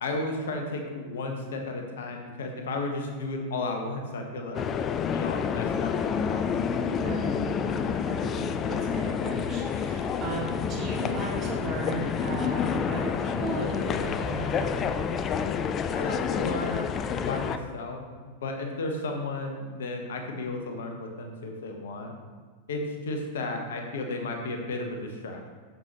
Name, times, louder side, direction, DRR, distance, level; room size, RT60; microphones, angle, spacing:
voice 1, 0.0-4.7 5.1-6.7 15.9-18.0 18.3-22.1 22.7-25.5, left 2 dB, 60° left, 3 dB, 0.9 m, -34 dB
sound 1, 4.5-17.6, left 7 dB, 30° left, 0.3 m, -29 dB
voice 2, 7.0-14.9, right 2 dB, 30° right, -3 dB, 2.0 m, -35 dB
7.2 x 6.7 x 2.9 m, 1.5 s
figure-of-eight pair, 90°, 0 cm